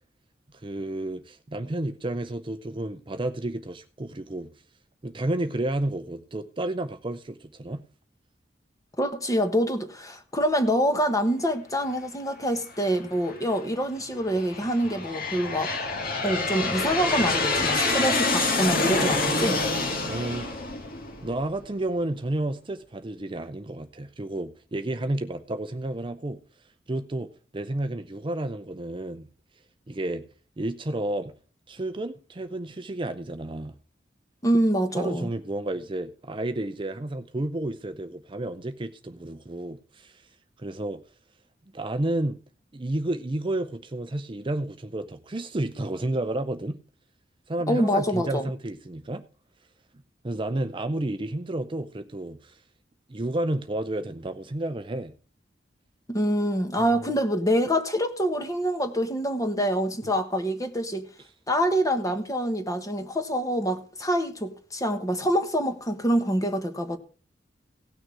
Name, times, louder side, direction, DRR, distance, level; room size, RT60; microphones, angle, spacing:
voice 1, 0.5-4.5 5.0-7.8 20.1-20.6 21.2-26.4 26.9-29.3 29.9-30.3 30.6-31.3 31.7-33.7 34.9-40.3 40.6-41.0 41.7-42.4 42.7-46.8 47.5-49.2 50.2-52.6 53.1-55.1 56.8-56.9 60.0-60.1, right 1 dB, 30° right, 0.6 m, -31 dB
voice 2, 9.0-15.7 16.2-19.6 34.4-35.3 47.7-48.5 56.1-61.1 61.5-67.0, equal, 20° left, 1.4 m, -26 dB
Aircraft, 12.8-13.4 14.1-21.6, left 3 dB, 55° left, 2.1 m, -27 dB
17.0 x 6.4 x 4.7 m
head